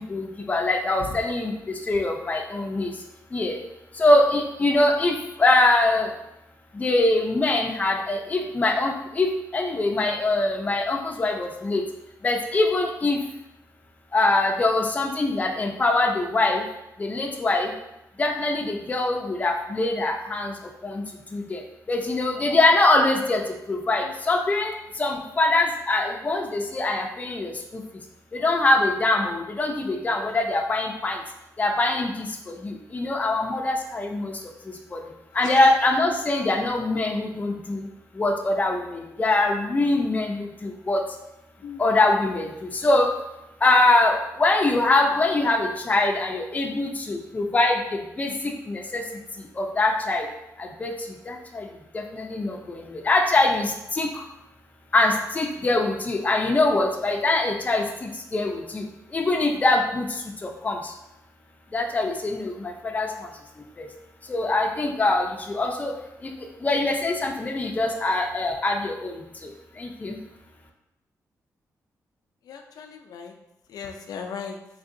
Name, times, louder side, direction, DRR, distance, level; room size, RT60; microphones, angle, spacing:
voice 1, 0.1-2.9 3.3-3.6 3.9-6.1 6.7-11.8 12.2-13.2 14.1-16.7 17.0-17.7 18.2-20.5 20.8-21.0 21.3-21.6 21.9-27.8 28.3-31.2 31.6-35.0 35.3-37.9 38.1-41.0 41.8-43.1 43.6-49.0 49.5-50.3 50.6-51.7 51.9-54.2 54.9-58.9 59.1-60.9 61.7-63.3 63.8-63.9 64.3-65.9 66.2-70.2, left 2 dB, 25° left, 2 dB, 0.4 m, -23 dB
voice 2, 35.4-35.7 41.6-41.8 72.5-73.3 73.7-74.6, left 6 dB, 90° left, 3 dB, 0.4 m, -37 dB
3.7 x 3.3 x 2.5 m, 0.90 s
wide cardioid pair, 135°, 6 cm